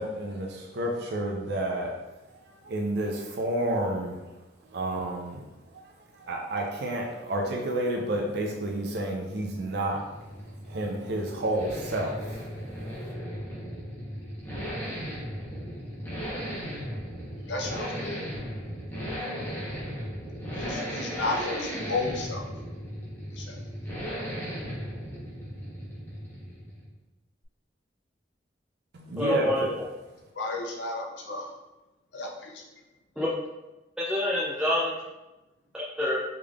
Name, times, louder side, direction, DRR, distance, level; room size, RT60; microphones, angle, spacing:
voice 1, 0.0-1.9 2.5-4.2 4.7-5.4 6.1-10.0 10.7-12.9 28.9-29.5, right 1 dB, 65° right, 0 dB, 0.5 m, -30 dB
sound 1, 9.3-27.0, equal, 10° left, 0.8 m, -36 dB
voice 2, 17.5-18.2 20.6-22.4 23.4-23.6 30.4-31.5 32.1-32.5, left 3 dB, 75° left, 0 dB, 0.6 m, -33 dB
voice 3, 29.2-29.7 33.2-33.3 34.0-34.9 35.7-36.2, left 1 dB, 5° right, -8 dB, 0.4 m, -27 dB
3.6 x 3.3 x 2.3 m, 1.0 s
head